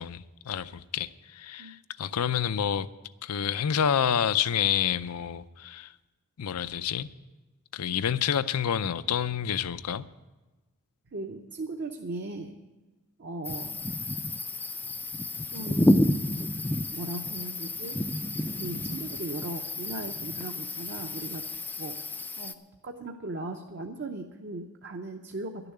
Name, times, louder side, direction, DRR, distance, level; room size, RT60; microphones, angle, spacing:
voice 1, 0.0-2.9 3.2-5.9 6.4-7.1 7.7-10.0, left 8 dB, 85° left, 0.5 m, -28 dB
voice 2, 11.1-12.6 13.2-13.7 15.5-16.0 16.9-18.0 18.5-21.4 21.8-22.0 22.4-22.5 22.8-25.7, right 2 dB, 50° right, 0.7 m, -38 dB
sound 1, 13.4-22.5, left 1 dB, 10° left, 0.3 m, -30 dB
12.0 x 6.9 x 9.9 m
head